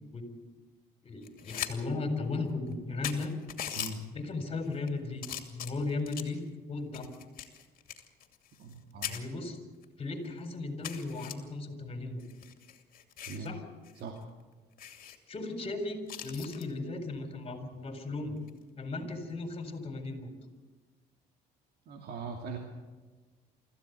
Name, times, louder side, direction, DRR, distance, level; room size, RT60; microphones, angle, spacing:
voice 1, 1.0-3.3 4.1-6.4 6.7-7.1 9.1-9.6 10.0-12.2 13.4-13.6 15.3-18.4 18.8-20.3, left 3 dB, 35° left, 6 dB, 4.3 m, -36 dB
sound 1, 1.2-1.7 2.1-2.2 2.7-2.8 3.0-3.9 4.6-4.9 5.2-6.4 6.9-8.8 9.0-9.2 9.8-9.9 10.2-10.3 10.8-11.3 12.2-13.5 13.8-14.0 14.3-14.4 14.8-15.2 16.1-16.7 18.4-18.6, left 10 dB, 60° left, 2.6 m, -40 dB
voice 2, 8.6-9.1 13.3-13.5 14.0-14.2 19.0-19.1 21.9-22.6, right 4 dB, 65° right, 2 dB, 2.5 m, -40 dB
25.0 x 15.0 x 8.2 m, 1.3 s
cardioid pair, 110°, 17 cm